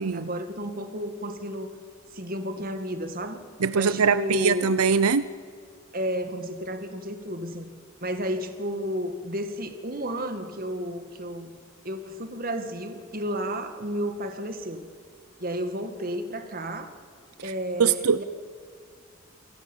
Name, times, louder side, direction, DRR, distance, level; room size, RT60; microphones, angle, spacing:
voice 1, 0.0-1.8 2.1-3.5 3.7-4.7 5.9-7.7 8.0-11.5 11.8-14.9 15.4-17.0 17.4-18.2, equal, 40° right, 8 dB, 2.0 m, -32 dB
voice 2, 3.6-5.2 17.4-17.5 17.8-18.2, right 6 dB, 85° right, 14 dB, 0.7 m, -22 dB
28.5 x 17.5 x 7.3 m, 2.1 s
head